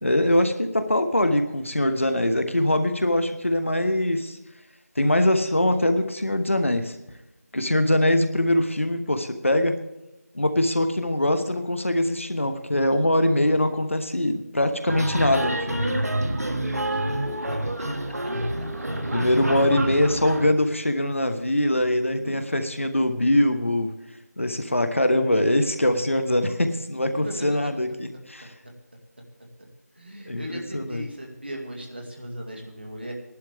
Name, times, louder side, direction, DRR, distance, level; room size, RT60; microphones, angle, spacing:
voice 1, 0.0-4.4 5.0-7.0 7.5-9.8 10.3-16.1 19.1-23.9 24.4-28.5 30.3-31.0, left 1 dB, 50° left, 8 dB, 1.1 m, -23 dB
sound 1, 14.9-20.5, right 1 dB, 70° right, 1.6 m, -27 dB
voice 2, 16.9-17.6 18.2-18.7 22.3-22.4 26.9-27.8 28.4-28.7 29.2-29.7 30.0-33.1, equal, 40° right, 1 dB, 2.2 m, -38 dB
17.5 x 11.5 x 3.5 m, 0.93 s
figure-of-eight pair, 180°, 9 cm